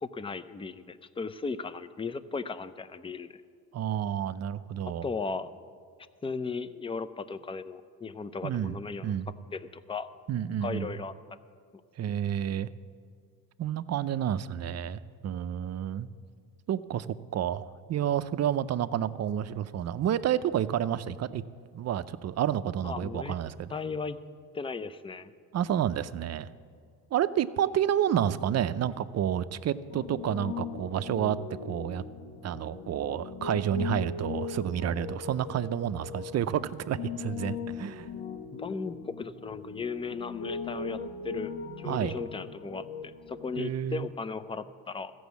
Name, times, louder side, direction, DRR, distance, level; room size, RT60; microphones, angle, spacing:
voice 1, 0.0-3.4 5.0-5.5 6.2-9.1 9.5-10.1 10.6-11.1 22.8-23.4 23.7-24.2 24.5-25.3 38.5-41.0 41.2-41.5 41.8-45.1, left 4 dB, 15° left, 13 dB, 0.5 m, -36 dB
voice 2, 3.7-5.0 8.4-8.8 9.0-9.3 10.3-10.9 12.0-12.7 13.6-16.1 16.7-21.4 21.7-23.7 25.5-26.5 27.1-31.4 31.6-32.0 32.4-38.1 41.8-42.2 43.6-44.1, right 10 dB, 45° right, 13 dB, 0.6 m, -30 dB
Piano, 29.9-43.6, left 5 dB, 70° left, 1.2 m, -39 dB
14.0 x 6.2 x 8.2 m, 2.2 s
supercardioid pair, 80°, 37 cm